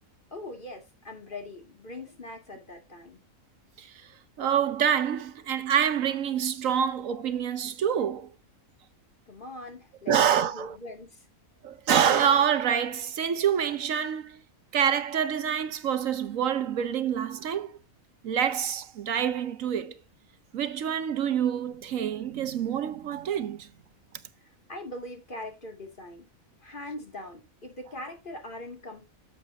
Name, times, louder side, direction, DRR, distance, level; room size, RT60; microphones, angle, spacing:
voice 1, 0.3-3.2 9.3-11.3 24.4-26.3 26.6-29.1, left 1 dB, 35° left, 2.5 m, -41 dB
voice 2, 4.4-8.3 10.1-10.7 11.6-14.4 14.7-17.7 18.2-20.0 20.5-23.7, right 8 dB, 70° right, 1.2 m, -26 dB
10.5 x 7.4 x 2.7 m
omnidirectional pair, 1.4 m